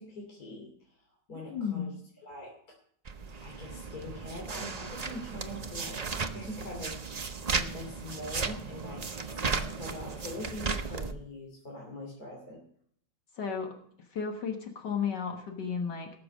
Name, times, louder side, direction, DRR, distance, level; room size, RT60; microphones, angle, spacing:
voice 1, 0.0-1.9 2.2-2.5 3.4-6.0 6.3-12.6, left 1 dB, 55° left, -1 dB, 3.3 m, -43 dB
voice 2, 1.3-1.9 13.4-13.7 14.1-16.1, left 6 dB, 70° left, 3 dB, 2.1 m, -33 dB
sound 1, 3.1-11.1, right 4 dB, 50° right, 0.4 m, -35 dB
18.5 x 6.9 x 6.5 m, 0.64 s
omnidirectional pair, 2.0 m